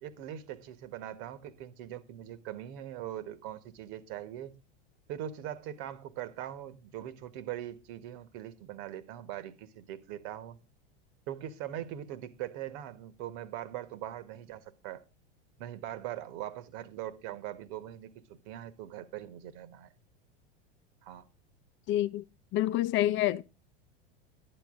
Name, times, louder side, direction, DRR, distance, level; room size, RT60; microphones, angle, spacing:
voice 1, 0.0-4.5 5.1-10.6 11.3-15.0 15.6-19.9 21.0-21.2, right 12 dB, 55° right, 1.5 m, -41 dB
voice 2, 21.9-22.2 22.5-23.4, left 14 dB, 40° left, 0.7 m, -27 dB
11.5 x 10.0 x 3.8 m
hypercardioid pair, 105°, 31 cm